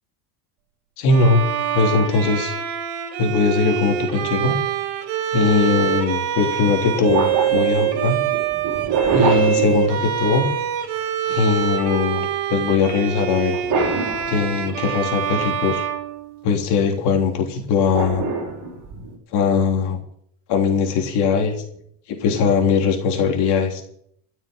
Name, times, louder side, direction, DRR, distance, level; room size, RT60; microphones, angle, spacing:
voice 1, 1.0-1.4 1.7-2.5 3.2-4.6 5.3-8.2 9.1-10.5 11.3-13.6 14.3-15.8 16.4-18.2 19.3-20.0 20.5-21.6 22.1-23.8, left 5 dB, 60° left, 3 dB, 3.5 m, -20 dB
Bowed string instrument, 1.1-16.8, right 10 dB, 80° right, 2.6 m, -25 dB
sound 1, 5.5-5.7 7.1-10.5 13.5-14.9 17.9-19.1, right 4 dB, 45° right, 5.2 m, -25 dB
14.0 x 7.4 x 9.4 m, 0.67 s
cardioid pair, 145°, 44 cm